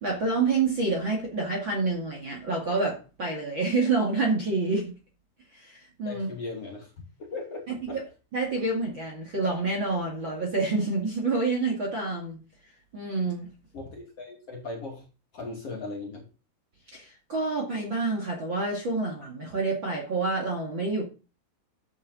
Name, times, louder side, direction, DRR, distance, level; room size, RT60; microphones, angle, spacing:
voice 1, 0.0-5.0 5.5-6.3 7.7-8.0 8.3-12.4 12.9-13.5 16.9-21.1, right 3 dB, 35° right, -1 dB, 2.4 m, -28 dB
voice 2, 6.0-6.9 7.2-8.0 13.7-15.0 15.3-16.2, left 3 dB, 40° left, 0 dB, 3.0 m, -38 dB
13.0 x 8.9 x 4.1 m, 0.34 s
omnidirectional pair, 4.9 m